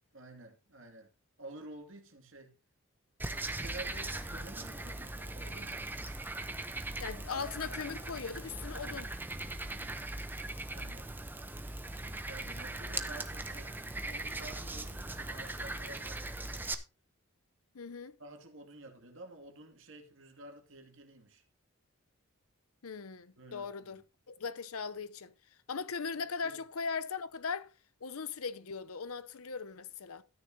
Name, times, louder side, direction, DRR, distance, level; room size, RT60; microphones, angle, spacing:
voice 1, 0.1-1.1 1.4-2.5 3.2-5.9 7.1-7.6 9.7-10.2 10.7-11.1 12.0-13.7 14.0-16.7 18.2-21.4 23.4-24.0 26.2-26.6, right 2 dB, 60° right, 2.4 m, -51 dB
Frog, 3.2-16.7, right 2 dB, 10° right, 0.8 m, -40 dB
voice 2, 7.0-9.1 17.7-18.2 22.8-24.0 24.3-25.3 25.7-27.7 28.0-30.2, left 5 dB, 85° left, 0.7 m, -39 dB
13.5 x 9.5 x 2.8 m
head